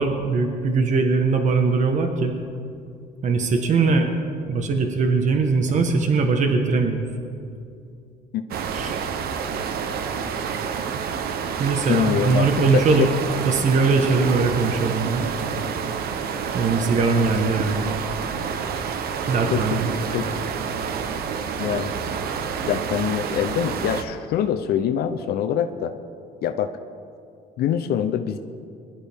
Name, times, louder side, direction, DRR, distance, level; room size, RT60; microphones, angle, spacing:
voice 1, 0.0-2.3 3.2-4.1 4.5-7.1 8.7-9.0 11.6-13.1 13.4-15.3 16.5-17.9 19.3-19.9, right 4 dB, 45° right, 4 dB, 1.4 m, -21 dB
sound 1, 8.5-24.0, right 6 dB, 65° right, 1.0 m, -28 dB
voice 2, 11.9-13.1 19.5-19.6 20.1-20.3 21.6-21.9 22.6-25.9 26.4-26.7 27.6-28.4, left 9 dB, 70° left, 8 dB, 0.7 m, -24 dB
21.5 x 12.0 x 3.6 m, 2.5 s
cardioid pair, 110°, 17 cm